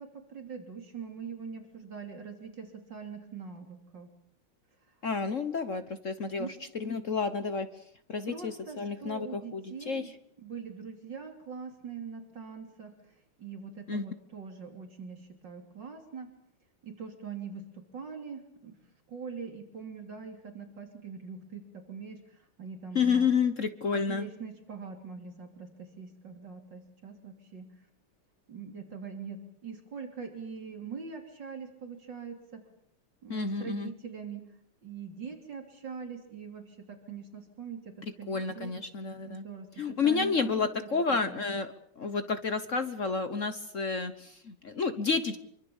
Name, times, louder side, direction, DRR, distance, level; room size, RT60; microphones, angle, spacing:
voice 1, 0.0-4.1 6.4-6.6 8.2-10.1 10.4-13.1 13.4-16.3 16.8-18.8 19.1-23.3 23.9-27.7 28.5-32.6 33.2-34.4 34.8-38.7 39.3-41.4, right 6 dB, 65° right, 4 dB, 3.8 m, -43 dB
voice 2, 5.0-7.7 8.1-10.1 13.9-14.0 22.9-24.3 33.3-33.9 38.3-39.4 39.8-45.4, left 5 dB, 45° left, 11 dB, 1.3 m, -30 dB
26.0 x 24.0 x 7.2 m, 0.69 s
omnidirectional pair, 2.2 m